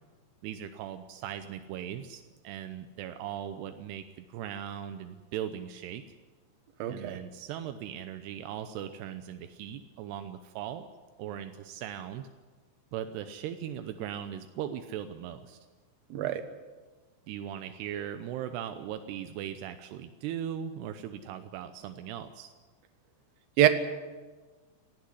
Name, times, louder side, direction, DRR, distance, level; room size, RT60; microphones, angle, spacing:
voice 1, 0.4-6.2 6.9-10.9 11.2-12.3 12.9-15.6 17.3-22.5, right 10 dB, 80° right, 9 dB, 2.4 m, -39 dB
voice 2, 6.8-7.2 16.1-16.4 23.6-23.7, right 13 dB, 65° right, 9 dB, 2.6 m, -24 dB
18.5 x 15.5 x 9.7 m, 1.3 s
omnidirectional pair, 5.8 m